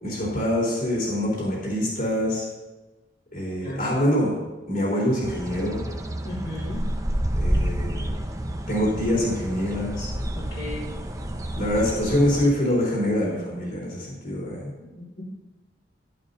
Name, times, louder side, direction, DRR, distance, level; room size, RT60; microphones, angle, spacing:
voice 1, 0.0-2.5 3.3-4.3 4.7-5.9 7.4-8.1 8.7-10.1 11.6-14.7, equal, 50° left, -4 dB, 4.0 m, -25 dB
sound 1, 5.2-12.5, right 1 dB, 20° right, 0.8 m, -29 dB
voice 2, 6.2-6.8 10.3-10.9 15.0-15.2, left 1 dB, 65° left, -10 dB, 3.7 m, -35 dB
12.0 x 11.5 x 2.8 m, 1.2 s
head